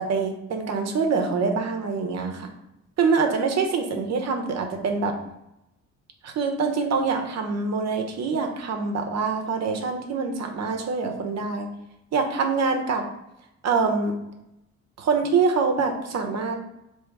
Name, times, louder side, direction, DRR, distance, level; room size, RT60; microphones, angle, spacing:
voice 1, 0.0-2.5 3.0-5.1 6.2-11.7 12.1-13.0 13.6-14.1 15.0-16.6, right 4 dB, 60° right, 4 dB, 0.8 m, -25 dB
3.3 x 3.0 x 4.6 m, 0.87 s
cardioid pair, 90°, 30 cm